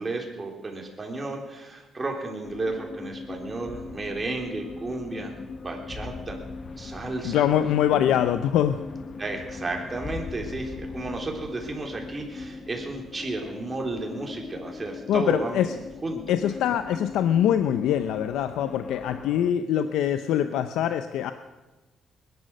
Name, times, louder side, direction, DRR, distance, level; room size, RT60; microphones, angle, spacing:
voice 1, 0.0-5.3 5.6-6.4 6.8-7.4 9.2-15.7 16.0-16.4, right 2 dB, 25° right, 1 dB, 3.5 m, -33 dB
sound 1, 2.4-19.5, left 4 dB, 45° left, 0.9 m, -40 dB
voice 2, 7.2-8.8 15.1-15.7 16.3-21.3, left 10 dB, 90° left, 10 dB, 0.6 m, -23 dB
20.0 x 10.5 x 6.3 m, 1.1 s
cardioid pair, 90°, 0 cm